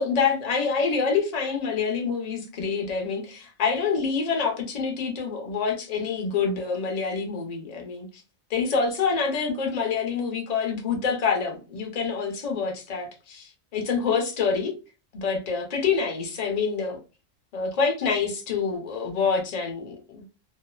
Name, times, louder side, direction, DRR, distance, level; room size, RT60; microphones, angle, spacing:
voice 1, 0.0-8.1 8.5-14.7 15.1-17.0 17.5-20.2, left 5 dB, 45° left, 0.6 m, -26 dB
2.7 x 2.0 x 2.3 m
omnidirectional pair, 1.3 m